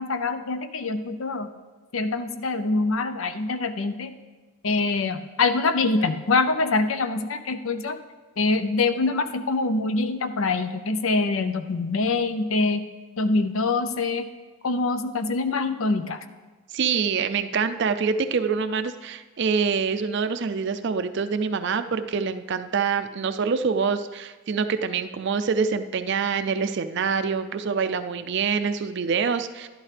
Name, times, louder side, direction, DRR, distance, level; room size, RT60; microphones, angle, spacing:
voice 1, 0.0-1.5 1.9-4.1 4.6-8.0 8.4-12.8 13.2-14.3 14.6-16.2, left 3 dB, 70° left, 9 dB, 0.6 m, -24 dB
voice 2, 16.7-29.7, right 5 dB, 55° right, 10 dB, 0.4 m, -25 dB
11.5 x 11.5 x 3.3 m, 1.3 s
head